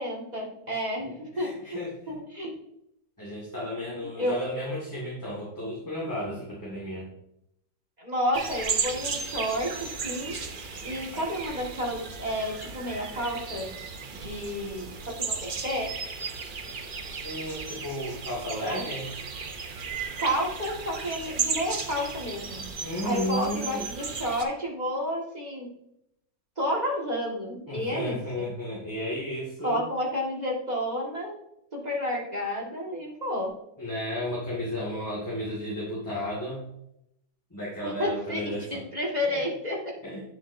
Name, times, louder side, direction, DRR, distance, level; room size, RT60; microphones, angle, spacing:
voice 1, 0.0-1.8 2.1-2.5 4.0-4.4 8.0-10.4 10.8-13.8 14.2-15.9 18.6-18.8 20.2-22.7 23.0-25.7 26.6-28.5 29.6-31.4 31.7-33.5 37.8-39.9, equal, 20° right, -3 dB, 1.9 m, -31 dB
voice 2, 0.7-2.2 3.2-7.1 11.1-11.2 17.2-19.1 22.8-23.9 27.7-29.8 33.8-36.7 37.5-38.8 39.3-39.4 40.0-40.2, equal, 10° left, -8 dB, 2.0 m, -33 dB
sound 1, 8.3-24.4, right 5 dB, 70° right, 0.4 m, -35 dB
8.9 x 7.2 x 2.7 m, 0.78 s
omnidirectional pair, 2.0 m